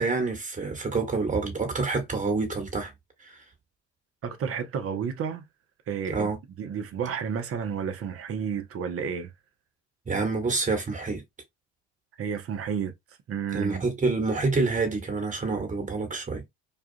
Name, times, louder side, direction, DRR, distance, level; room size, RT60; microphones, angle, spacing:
voice 1, 0.0-2.9 3.2-3.4 6.1-6.4 10.1-11.2 13.5-16.4, right 3 dB, 20° right, 1.3 m, -27 dB
voice 2, 4.2-5.4 5.9-6.3 6.6-9.3 12.2-12.9 13.3-13.8, right 7 dB, 40° right, 0.7 m, -31 dB
2.4 x 2.3 x 2.6 m
hypercardioid pair, 65°, 34 cm